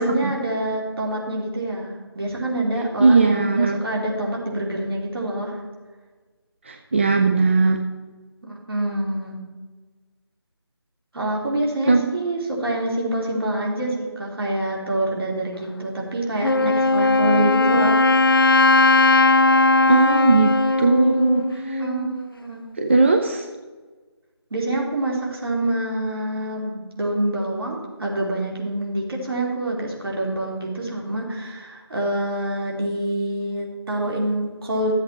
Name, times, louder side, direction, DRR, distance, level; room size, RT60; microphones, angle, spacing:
voice 1, 0.0-5.6 8.4-9.4 11.1-18.1 21.8-22.6 24.5-34.9, right 1 dB, 60° right, -2 dB, 3.3 m, -26 dB
voice 2, 3.0-3.8 6.7-7.8 11.9-12.1 19.9-21.8 22.8-23.5, right 3 dB, 25° right, 3 dB, 0.5 m, -18 dB
Wind instrument woodwind instrument, 16.4-22.2, left 2 dB, 55° left, 0.5 m, -18 dB
13.5 x 7.9 x 4.3 m, 1.4 s
figure-of-eight pair, 160°, 14 cm